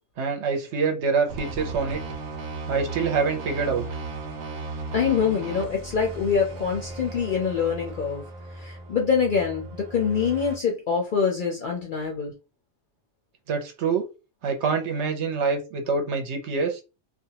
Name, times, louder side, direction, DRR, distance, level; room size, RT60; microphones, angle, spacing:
voice 1, 0.2-2.0 2.7-3.8 13.5-14.0 14.4-16.8, right 5 dB, 65° right, 0.9 m, -25 dB
sound 1, 1.3-10.6, right 3 dB, 90° right, 1.0 m, -36 dB
voice 2, 4.9-8.2 8.6-12.3, left 6 dB, 55° left, 0.6 m, -25 dB
2.5 x 2.2 x 2.8 m
omnidirectional pair, 1.4 m